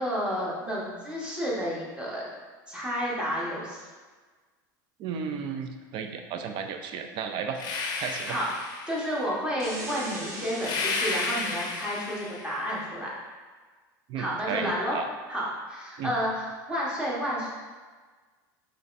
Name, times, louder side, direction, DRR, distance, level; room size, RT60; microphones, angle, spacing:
voice 1, 0.0-2.2 2.7-3.8 8.2-8.5 8.9-13.1 14.2-15.0 15.3-17.5, equal, 10° right, -6 dB, 1.1 m, -31 dB
voice 2, 5.0-7.6 8.0-8.4 14.1-15.1 16.0-16.1, right 6 dB, 50° right, 6 dB, 0.4 m, -33 dB
sound 1, 7.5-9.2 10.6-12.7, left 3 dB, 45° left, 0.6 m, -32 dB
sound 2, 9.6-12.1, right 1 dB, 30° right, 0.8 m, -40 dB
3.9 x 3.2 x 2.5 m, 1.4 s
supercardioid pair, 105°, 10 cm